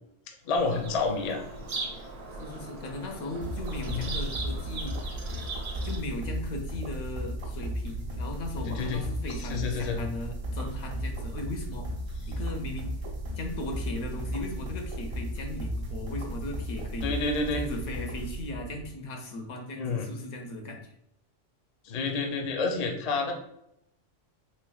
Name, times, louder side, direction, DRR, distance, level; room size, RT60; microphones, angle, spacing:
voice 1, 0.4-1.4 3.9-4.0 8.7-9.0 9.5-10.0 17.0-17.6 19.8-20.1 21.8-23.3, left 4 dB, 50° left, 2 dB, 0.5 m, -29 dB
Bird vocalization bird call bird song, 0.5-6.0, right 3 dB, 90° right, 1.1 m, -39 dB
voice 2, 2.4-5.0 5.8-11.9 12.3-12.9 13.4-17.2 17.5-20.9, left 1 dB, 80° left, 3 dB, 1.0 m, -37 dB
sound 1, 3.4-18.9, equal, 50° right, 0.4 m, -35 dB
3.2 x 3.2 x 2.3 m, 0.77 s
omnidirectional pair, 1.3 m